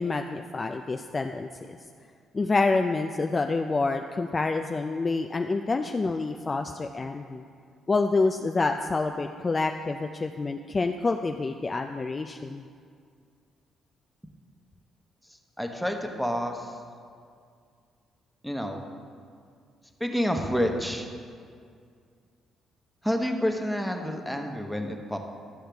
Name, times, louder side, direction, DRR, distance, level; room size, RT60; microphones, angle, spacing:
voice 1, 0.0-1.8 2.3-7.4 7.9-12.6, left 3 dB, 30° left, 5 dB, 0.3 m, -27 dB
voice 2, 15.3-16.8 18.4-18.8 20.0-21.1 23.0-25.2, equal, ahead, 2 dB, 0.9 m, -29 dB
11.5 x 6.4 x 3.4 m, 2.2 s
cardioid pair, 90°, 0 cm